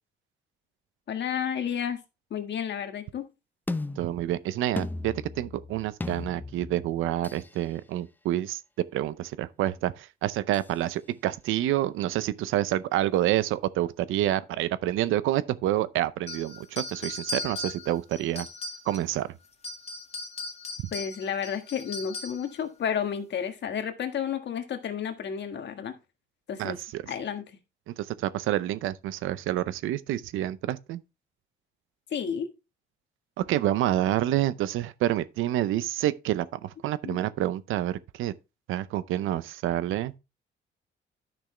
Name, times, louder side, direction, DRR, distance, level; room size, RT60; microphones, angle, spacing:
voice 1, 1.1-2.0 2.3-3.3 20.9-25.9 26.5-26.8 27.1-27.4 32.1-32.5 37.0-37.2, left 8 dB, 60° left, 1.6 m, -31 dB
sound 1, 3.7-7.6 10.5-10.7, left 2 dB, 10° left, 0.6 m, -36 dB
voice 2, 4.0-8.6 8.9-18.5 18.9-19.3 20.8-20.9 26.6-27.0 27.9-31.0 33.4-38.3 38.7-40.1, right 13 dB, 90° right, 0.6 m, -28 dB
sound 2, 16.3-19.2 19.5-22.5, left 2 dB, 30° left, 2.0 m, -38 dB
10.5 x 6.1 x 3.3 m
cardioid pair, 90°, 20 cm